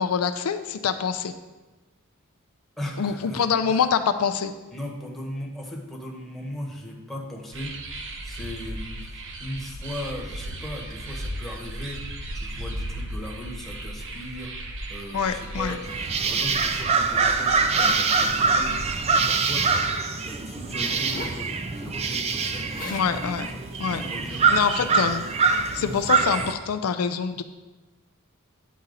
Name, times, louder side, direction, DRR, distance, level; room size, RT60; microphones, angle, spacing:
voice 1, 0.0-1.3 3.0-4.5 15.1-15.7 22.9-23.5 23.8-24.0 24.3-25.3 25.7-27.4, left 6 dB, 80° left, 9 dB, 0.4 m, -25 dB
voice 2, 2.8-3.9 4.7-7.7 8.2-14.5 14.9-18.8 19.1-19.9 20.2-23.2 23.5-24.5, left 1 dB, ahead, -3 dB, 1.1 m, -38 dB
sound 1, 7.5-19.0, right 1 dB, 60° right, 0.8 m, -36 dB
sound 2, 15.8-26.5, right 4 dB, 30° right, 0.4 m, -24 dB
Zipper (clothing), 20.6-21.4 22.4-22.5 22.7-23.1 23.8-24.0, left 3 dB, 40° left, 0.6 m, -38 dB
9.3 x 4.1 x 3.9 m, 1.2 s
head